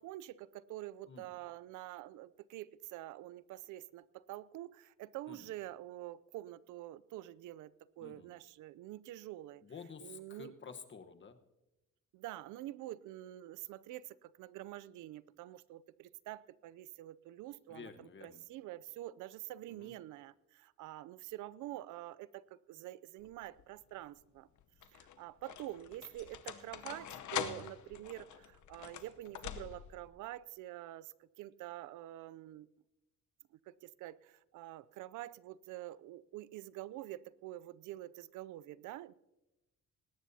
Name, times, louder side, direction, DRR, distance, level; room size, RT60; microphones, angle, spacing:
voice 1, 0.0-9.6 10.0-10.5 12.1-24.5 24.9-32.7 33.7-39.1, right 15 dB, 90° right, 19 dB, 0.5 m, -47 dB
voice 2, 8.0-8.3 9.6-11.4 17.7-18.4 19.7-19.9, left 5 dB, 40° left, 8 dB, 1.2 m, -51 dB
sound 1, 23.2-23.7 24.6-30.1, left 10 dB, 70° left, 0.9 m, -44 dB
19.0 x 17.0 x 2.8 m, 0.96 s
cardioid pair, 90°, 30 cm